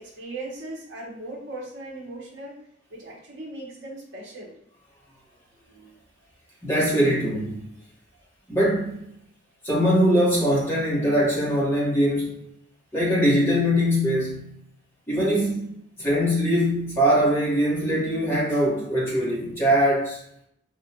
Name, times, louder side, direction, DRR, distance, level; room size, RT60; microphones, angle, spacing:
voice 1, 0.0-2.6 2.9-4.5, right 2 dB, 65° right, -4 dB, 0.9 m, -38 dB
voice 2, 6.6-7.5 8.5-9.0 9.6-12.3 12.9-14.5 15.1-15.7 16.0-20.2, equal, 15° left, -7 dB, 1.2 m, -22 dB
3.5 x 2.4 x 2.8 m, 0.73 s
head